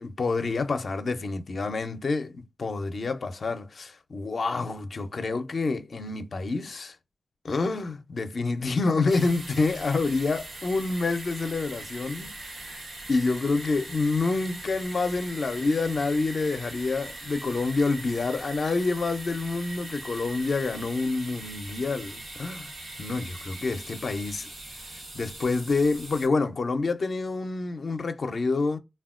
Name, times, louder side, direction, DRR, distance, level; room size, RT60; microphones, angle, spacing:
voice 1, 0.0-7.0 7.4-12.8 13.1-24.5 25.1-28.8, left 3 dB, 65° left, 0.5 m, -28 dB
sound 1, 9.1-26.3, right 2 dB, 85° right, 1.0 m, -41 dB
3.4 x 2.2 x 2.4 m
cardioid pair, 60°, 0 cm